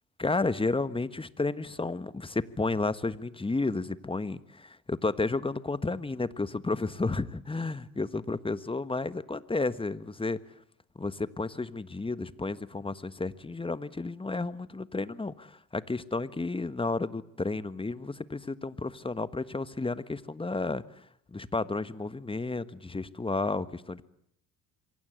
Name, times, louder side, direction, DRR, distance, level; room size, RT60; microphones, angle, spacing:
voice 1, 0.2-10.4 10.9-21.0 21.3-24.0, left 3 dB, 10° left, 15 dB, 1.4 m, -32 dB
26.5 x 23.5 x 7.9 m, 0.70 s
hypercardioid pair, 65°, 43 cm